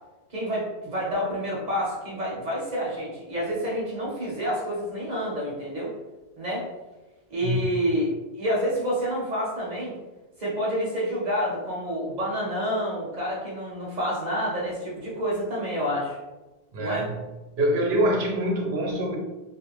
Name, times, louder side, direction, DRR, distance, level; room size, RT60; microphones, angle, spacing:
voice 1, 0.3-5.9 6.4-6.7 7.3-9.9 10.4-16.2 16.8-17.1, equal, 50° right, -5 dB, 0.8 m, -28 dB
voice 2, 16.7-17.1 17.6-19.2, equal, 80° right, 1 dB, 0.9 m, -24 dB
2.4 x 2.2 x 3.0 m, 1.1 s
omnidirectional pair, 1.0 m